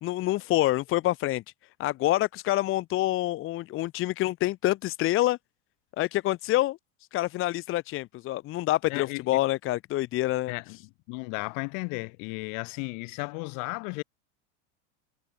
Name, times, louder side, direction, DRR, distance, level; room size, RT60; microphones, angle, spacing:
voice 1, 0.0-1.4 1.8-5.4 6.0-6.8 7.1-10.5, left 16 dB, 35° left, 1.0 m, -27 dB
voice 2, 8.9-9.4 10.5-10.8 11.1-14.0, left 36 dB, 55° left, 2.7 m, -34 dB
supercardioid pair, 140°, 38 cm